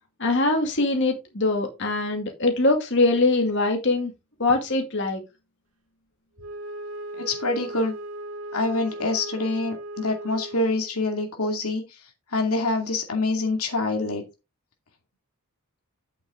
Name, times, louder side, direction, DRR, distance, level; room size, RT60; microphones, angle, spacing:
voice 1, 0.2-4.1 4.4-5.2, left 2 dB, 55° left, 2.3 m, -22 dB
Wind instrument woodwind instrument, 6.4-11.0, right 1 dB, 80° right, 2.0 m, -37 dB
voice 2, 7.2-7.9 8.5-11.8 12.3-14.2, left 2 dB, 85° left, 2.4 m, -26 dB
8.8 x 6.9 x 3.6 m
head